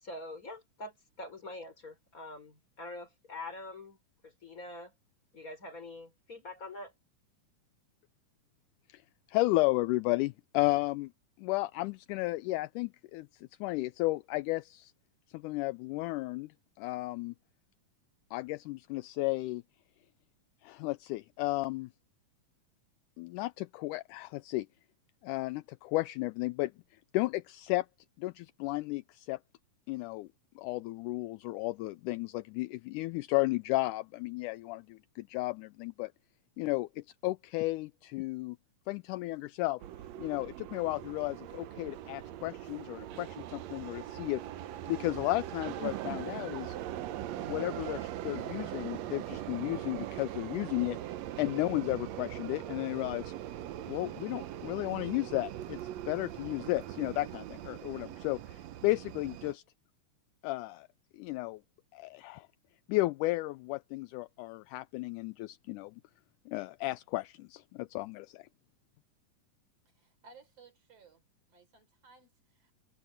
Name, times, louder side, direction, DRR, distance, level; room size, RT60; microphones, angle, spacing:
voice 1, 0.0-4.0 4.2-4.9 5.3-6.9, left 2 dB, 25° left, 4.4 m, -45 dB
voice 2, 9.3-11.1 11.4-14.9 15.3-16.5 16.8-17.3 18.3-19.6 20.6-21.9 23.2-24.7 25.2-27.9 28.2-29.4 29.9-30.3 30.6-36.1 36.6-38.6 38.9-39.8 40.2-44.4 44.9-46.8 47.4-53.3 53.9-59.6 60.4-60.9 61.1-61.6 61.9-62.5 62.9-66.0 66.5-68.5, left 20 dB, 80° left, 1.9 m, -33 dB
sound 1, 39.8-59.5, right 12 dB, 70° right, 1.8 m, -41 dB
voice 3, 69.9-71.2 71.5-72.7, right 4 dB, 50° right, 5.1 m, -59 dB
omnidirectional pair, 3.8 m